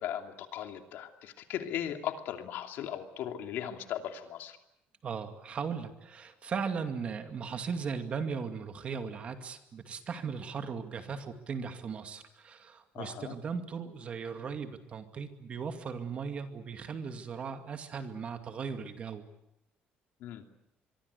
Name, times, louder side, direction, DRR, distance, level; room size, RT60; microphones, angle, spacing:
voice 1, 0.0-4.6 12.9-13.4 20.2-20.4, left 10 dB, 70° left, 5 dB, 2.8 m, -38 dB
voice 2, 5.0-19.2, right 6 dB, 35° right, 7 dB, 2.4 m, -37 dB
25.0 x 23.5 x 8.3 m, 0.87 s
cardioid pair, 160°, 4 cm